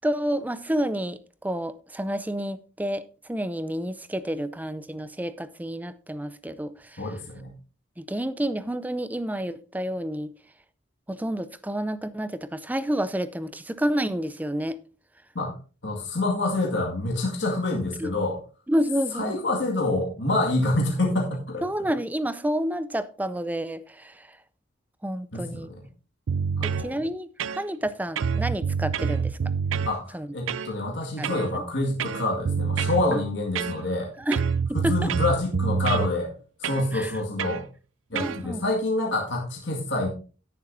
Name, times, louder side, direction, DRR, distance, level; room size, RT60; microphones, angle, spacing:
voice 1, 0.0-7.0 8.0-10.3 11.1-14.8 18.0-18.1 18.7-19.4 21.6-24.4 25.0-25.7 26.6-29.4 30.1-30.3 31.2-31.6 33.1-33.2 34.2-34.4 34.7-35.1 36.9-37.1 38.1-38.6, right 1 dB, 10° right, 0.5 m, -29 dB
voice 2, 7.0-7.5 15.3-15.5 15.8-18.4 19.1-21.6 25.3-25.8 26.6-27.0 29.8-34.1 34.7-36.3 36.6-37.7 38.1-40.1, left 2 dB, 65° left, 2.1 m, -27 dB
sound 1, 26.3-26.9 27.4-27.9 28.2-29.9 30.5-30.7 31.2-31.5 32.0-33.1 33.6-34.0 34.3-36.1 36.6-36.9 37.4-37.6 38.2-38.4, right 6 dB, 85° right, 0.4 m, -27 dB
16.5 x 6.8 x 2.7 m
head